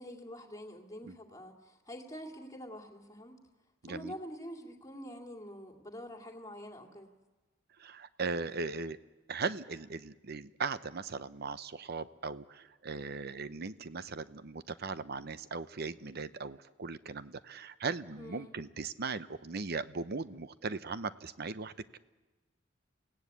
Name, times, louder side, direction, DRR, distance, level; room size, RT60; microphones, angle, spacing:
voice 1, 0.0-3.3 3.9-7.1 18.2-18.5, equal, 20° left, 2 dB, 2.4 m, -46 dB
voice 2, 3.8-4.1 7.8-9.0 9.3-21.7, right 4 dB, 55° right, 14 dB, 0.8 m, -38 dB
28.5 x 17.0 x 8.3 m, 1.2 s
head